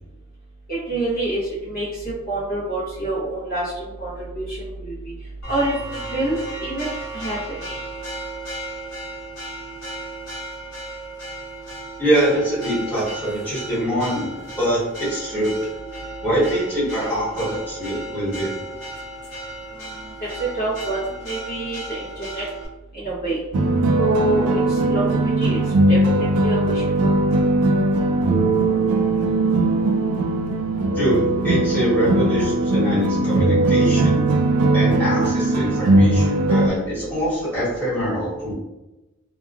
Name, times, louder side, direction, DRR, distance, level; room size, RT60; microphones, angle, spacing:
voice 1, 0.7-5.1 5.5-6.9 7.1-7.6 20.4-21.0 21.2-22.4 22.9-23.4 24.0-25.6 25.9-26.8, right 1 dB, 45° left, -9 dB, 0.8 m, -26 dB
Church bell, 5.4-22.7, right 1 dB, 80° left, 0.9 m, -35 dB
voice 2, 12.0-15.5 16.2-18.5 30.9-34.2 34.7-38.5, equal, 10° left, -11 dB, 1.3 m, -24 dB
sound 1, 23.5-36.7, right 2 dB, 85° right, 0.3 m, -19 dB
2.8 x 2.3 x 2.4 m, 1.0 s
head